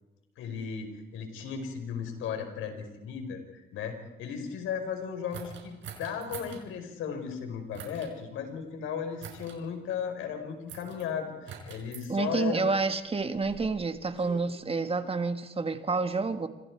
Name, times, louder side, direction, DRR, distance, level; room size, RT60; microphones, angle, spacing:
voice 1, 0.4-12.7, left 7 dB, 90° left, 4.9 m, -36 dB
sound 1, 5.3-6.6 7.7-8.1 9.2-9.6 10.7-11.0 11.5-12.1 13.0-14.4, right 6 dB, 75° right, 5.7 m, -45 dB
voice 2, 12.1-16.5, right 4 dB, 30° right, 1.9 m, -29 dB
28.0 x 26.0 x 4.8 m
cardioid pair, 90°, 20 cm